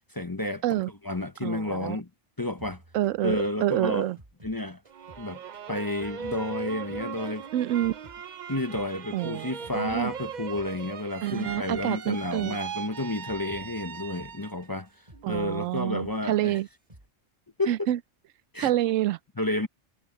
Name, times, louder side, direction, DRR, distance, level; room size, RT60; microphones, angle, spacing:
voice 1, 0.0-2.1 2.4-2.8 3.2-4.1 4.4-4.8 5.2-5.4 5.7-7.5 8.5-16.6 17.6-17.9 18.5-18.7 19.4-19.7, left 1 dB, 20° left, 0.8 m, -31 dB
voice 2, 1.4-2.0 2.9-3.4 3.6-4.2 7.5-8.0 9.1-10.1 11.2-12.6 15.2-16.7 17.7-18.0 18.6-19.2, right 13 dB, 85° right, 1.0 m, -27 dB
sound 1, 2.6-5.3 5.5-8.2 8.5-11.9 12.1-12.5 12.8-15.5 15.8-16.2 16.4-17.1, right 1 dB, 25° right, 2.8 m, -54 dB
sound 2, 4.9-14.7 15.1-15.8, right 6 dB, 45° right, 0.7 m, -39 dB
omnidirectional pair, 1.3 m